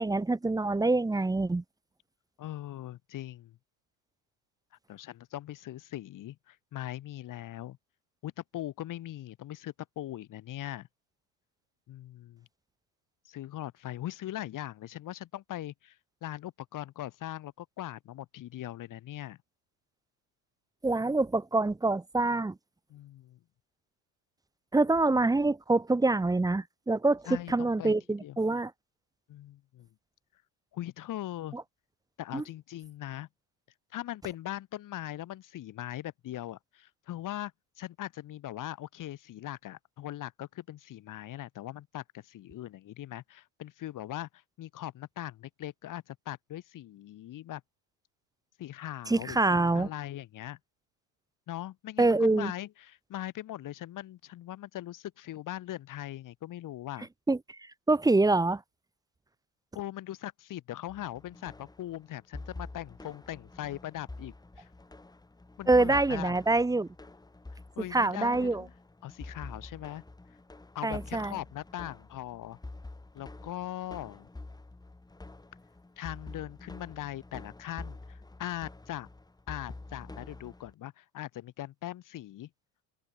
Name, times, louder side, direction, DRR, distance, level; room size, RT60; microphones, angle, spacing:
voice 1, 0.0-1.6 20.8-22.5 24.7-27.2 27.5-28.7 31.5-31.6 32.3-32.4 49.1-49.9 52.0-52.5 57.3-58.6 65.7-66.9 67.9-68.6 70.8-71.3, right 2 dB, 10° right, 1.3 m, -26 dB
voice 2, 2.4-3.6 4.9-7.8 8.2-10.9 11.9-12.5 13.3-16.0 16.2-19.4 22.9-23.4 27.3-27.9 28.2-28.4 29.3-29.9 30.7-31.6 32.2-33.3 33.9-37.5 37.8-44.3 44.6-47.6 48.6-50.6 51.5-57.1 59.7-64.7 65.6-66.4 67.8-68.7 69.0-70.0 70.7-72.6 73.1-74.3 76.0-79.1 79.5-82.5, left 13 dB, 50° left, 7.8 m, -40 dB
sound 1, 60.9-80.7, left 2 dB, 10° left, 7.5 m, -47 dB
cardioid pair, 125°, 40 cm